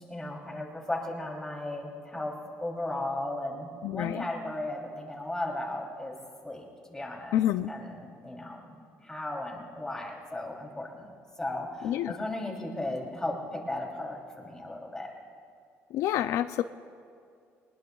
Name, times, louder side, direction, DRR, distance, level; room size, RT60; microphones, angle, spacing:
voice 1, 0.0-2.3 2.6-6.1 6.4-7.4 7.7-11.1 11.4-15.1, left 1 dB, 10° left, -1 dB, 3.1 m, -36 dB
voice 2, 3.8-4.2 7.3-7.7 11.8-12.1 15.9-16.6, left 12 dB, 75° left, 11 dB, 0.4 m, -27 dB
23.0 x 20.0 x 2.3 m, 2.3 s
cardioid pair, 115°, 5 cm